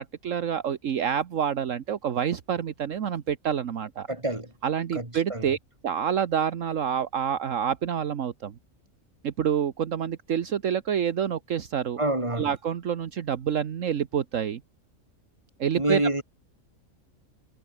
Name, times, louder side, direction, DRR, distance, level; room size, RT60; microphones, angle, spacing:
voice 1, 0.0-4.1 4.6-5.6 5.8-8.5 9.2-12.0 12.3-14.6 15.6-16.2, right 8 dB, 65° right, 1.4 m, -27 dB
voice 2, 4.1-4.5 4.9-5.5 12.0-12.5 15.8-16.2, right 1 dB, 20° right, 4.0 m, -27 dB
omnidirectional pair, 1.4 m